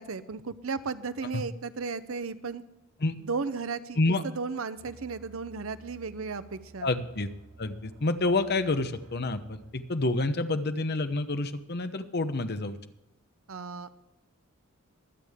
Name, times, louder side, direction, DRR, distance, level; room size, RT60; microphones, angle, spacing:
voice 1, 0.0-2.6 3.2-6.9 13.5-13.9, right 4 dB, 70° right, 13 dB, 0.7 m, -35 dB
sound 1, 4.7-9.7, right 2 dB, 85° right, 3.2 m, -54 dB
voice 2, 6.8-7.3 7.6-12.8, left 2 dB, 50° left, 10 dB, 0.9 m, -28 dB
23.0 x 8.4 x 3.6 m, 0.91 s
head